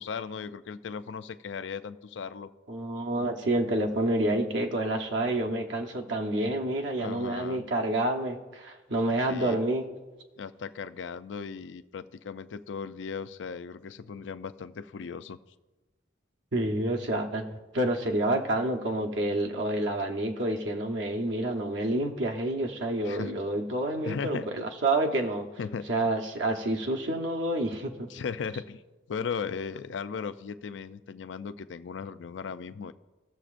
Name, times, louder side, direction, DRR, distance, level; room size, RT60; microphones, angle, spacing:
voice 1, 0.0-2.5 7.0-7.6 9.3-9.6 10.4-15.4 23.0-23.3 24.0-24.5 25.6-25.9 28.1-28.8 29.1-32.9, left 6 dB, 80° left, 12 dB, 0.4 m, -37 dB
voice 2, 2.7-9.9 16.5-25.5 25.9-28.1, right 1 dB, 75° right, 2 dB, 1.0 m, -28 dB
18.0 x 7.0 x 2.5 m, 1.2 s
head